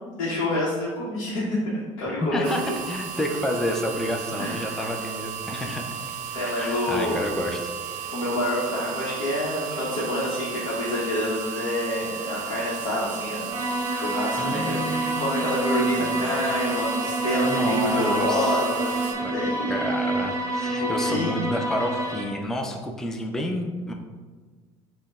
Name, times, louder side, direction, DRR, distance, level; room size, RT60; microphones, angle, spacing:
voice 1, 0.0-1.6 2.0-2.7 4.4-5.0 6.3-7.2 8.1-13.5 13.9-19.8 20.6-21.4, left 1 dB, 65° left, -6 dB, 0.8 m, -28 dB
voice 2, 2.2-5.8 6.5-7.6 14.4-15.3 15.9-16.3 17.4-18.6 19.2-19.3 19.7-23.9, left 1 dB, 5° left, 2 dB, 0.3 m, -29 dB
sound 1, 2.4-19.1, right 8 dB, 50° right, 0.6 m, -34 dB
sound 2, 13.5-22.2, right 1 dB, 20° right, 1.0 m, -27 dB
5.2 x 2.0 x 2.4 m, 1.4 s
hypercardioid pair, 70°, 17 cm